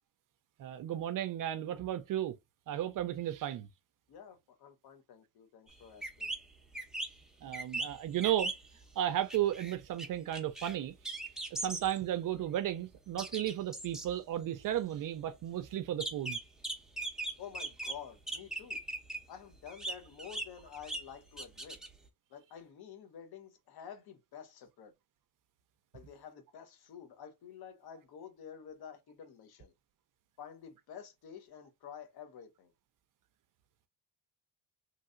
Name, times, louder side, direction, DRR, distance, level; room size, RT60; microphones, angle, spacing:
voice 1, 0.6-2.4 2.7-3.7 7.4-8.5 9.0-10.9 11.4-16.4, right 11 dB, 50° right, 0.4 m, -34 dB
voice 2, 4.1-6.3 17.4-18.8 19.3-21.8 22.3-24.9 25.9-29.7 30.4-32.7, left 8 dB, 60° left, 1.0 m, -50 dB
sound 1, 5.7-5.8 6.0-6.4 6.7-7.1 7.5-8.8 9.3-10.1 10.3-10.8 11.0-12.0 12.3-12.4 13.2-14.1 16.0-18.0 18.3-19.2 19.5-21.1 21.4-22.0, right 2 dB, ahead, 0.6 m, -39 dB
3.1 x 2.7 x 2.4 m
cardioid pair, 95°, 43 cm